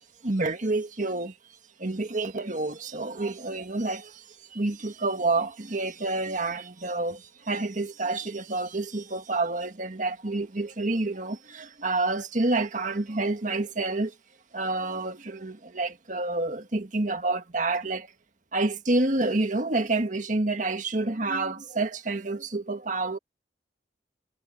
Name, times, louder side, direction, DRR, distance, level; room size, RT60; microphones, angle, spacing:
voice 1, 0.2-1.3 1.8-4.2 4.5-14.1 14.5-18.1 18.5-23.2, right 2 dB, 45° right, 1.7 m, -28 dB
head